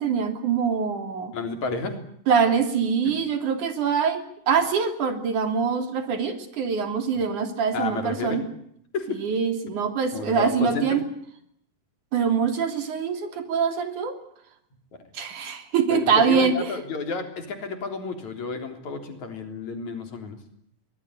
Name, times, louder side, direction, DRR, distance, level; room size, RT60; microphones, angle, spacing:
voice 1, 0.0-1.3 2.3-8.4 9.1-11.0 12.1-14.2 15.1-16.8, right 6 dB, 75° right, 7 dB, 4.5 m, -24 dB
voice 2, 1.3-2.0 3.1-3.2 7.7-8.4 8.9-9.2 9.7-9.8 10.1-11.0 15.9-20.4, left 4 dB, 65° left, 6 dB, 4.9 m, -31 dB
23.5 x 19.5 x 9.8 m, 0.70 s
omnidirectional pair, 3.6 m